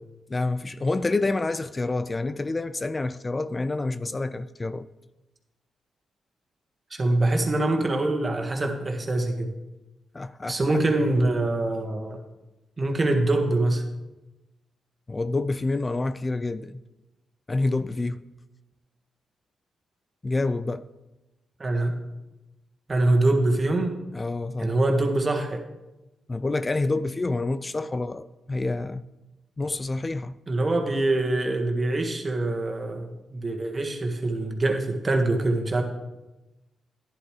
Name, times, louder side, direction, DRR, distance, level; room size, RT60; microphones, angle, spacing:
voice 1, 0.3-4.9 10.1-10.8 15.1-16.8 17.5-18.2 20.2-20.9 24.1-24.8 26.3-29.0 29.6-30.4, left 2 dB, 30° left, 0.4 m, -28 dB
voice 2, 6.9-9.5 10.5-12.2 12.8-13.8 21.6-21.9 22.9-23.9 24.6-25.6 30.5-35.8, right 2 dB, 40° right, 1.7 m, -24 dB
11.5 x 10.5 x 3.2 m
supercardioid pair, 55°, 0 cm